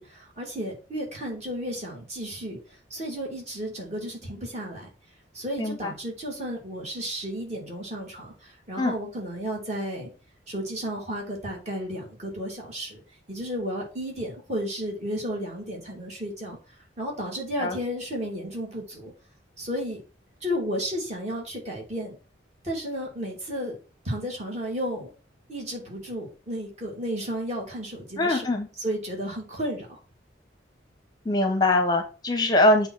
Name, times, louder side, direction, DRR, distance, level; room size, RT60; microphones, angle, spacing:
voice 1, 0.0-2.6 2.9-4.9 5.3-10.1 10.5-13.0 13.3-16.6 17.0-19.1 19.6-20.0 20.4-22.1 22.6-23.8 24.0-25.1 25.5-28.5 28.8-30.0, equal, 35° right, -2 dB, 2.6 m, -33 dB
voice 2, 5.6-5.9 8.8-8.9 17.6-17.8 28.2-28.7 31.2-32.9, left 2 dB, 20° left, 5 dB, 0.8 m, -22 dB
7.8 x 3.0 x 6.1 m, 0.35 s
head